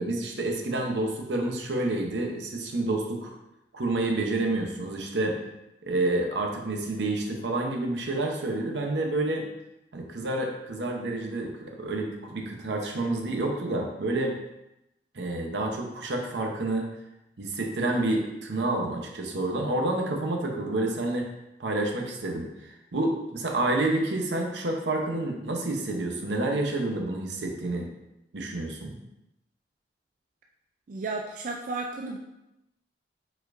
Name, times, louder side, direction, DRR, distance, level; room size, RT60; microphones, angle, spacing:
voice 1, 0.0-3.3 3.7-5.4 5.8-9.5 9.9-14.4 15.1-16.9 17.4-21.3 21.6-27.9 28.3-28.9, right 2 dB, 80° right, 2 dB, 0.8 m, -29 dB
voice 2, 30.9-32.2, right 3 dB, 50° right, 1 dB, 0.4 m, -33 dB
4.8 x 4.3 x 2.5 m, 0.90 s
head